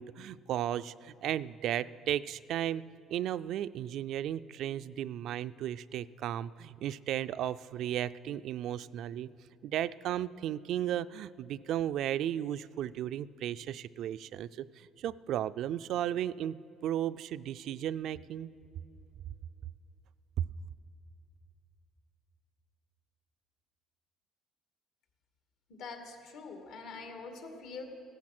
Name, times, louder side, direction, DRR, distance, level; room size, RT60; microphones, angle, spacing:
voice 1, 0.0-2.8 3.1-9.3 9.6-16.6 16.8-18.5 20.4-20.5, right 11 dB, 65° right, 14 dB, 0.3 m, -34 dB
voice 2, 25.7-27.8, left 4 dB, 80° left, 4 dB, 2.3 m, -44 dB
16.0 x 13.5 x 6.0 m, 2.7 s
cardioid pair, 140°, 0 cm